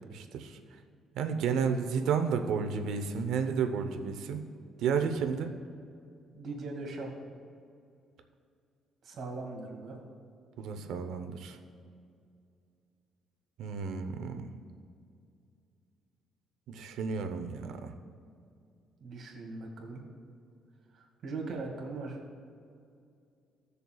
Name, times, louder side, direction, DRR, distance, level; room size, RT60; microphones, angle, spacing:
voice 1, 0.1-0.6 1.1-4.4 4.8-5.5 10.6-11.6 13.6-14.5 16.7-17.9, right 6 dB, 80° right, 6 dB, 0.8 m, -32 dB
voice 2, 6.3-7.1 9.0-10.0 19.0-20.0 20.9-22.2, right 3 dB, 55° right, 0 dB, 2.1 m, -40 dB
17.5 x 6.7 x 2.4 m, 2.4 s
cardioid pair, 100°, 0 cm